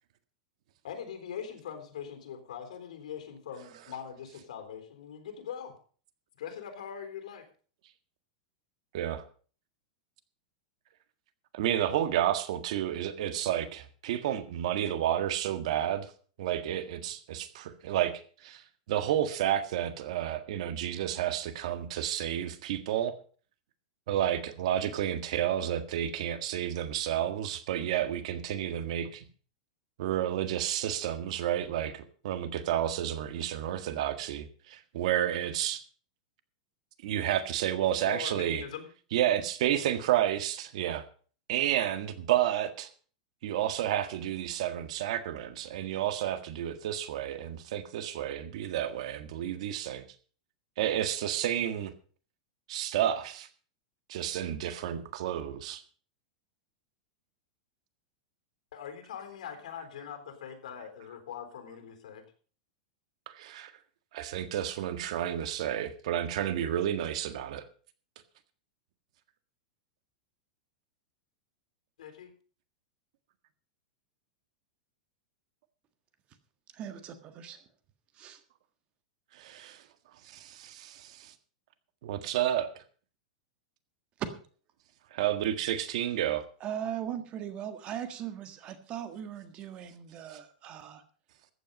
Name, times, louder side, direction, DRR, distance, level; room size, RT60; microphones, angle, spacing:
voice 1, 0.8-5.7 6.4-7.5 38.0-38.9 58.7-62.2 72.0-72.3, left 8 dB, 85° left, 7 dB, 3.7 m, -42 dB
voice 2, 11.5-16.1 16.4-18.1 18.4-23.2 24.1-29.2 30.0-35.8 37.0-38.6 39.1-41.0 41.5-42.9 43.4-50.0 50.8-51.9 52.7-53.5 54.1-55.8 63.3-63.7 64.1-67.7 79.3-79.8 80.2-81.3 82.0-82.7 85.1-86.4 90.3-90.4, right 11 dB, 60° right, 11 dB, 1.7 m, -31 dB
voice 3, 76.7-77.6 78.1-78.4 86.6-91.0, right 10 dB, 30° right, 10 dB, 1.6 m, -39 dB
14.5 x 9.2 x 5.3 m, 0.41 s
supercardioid pair, 160°, 4 cm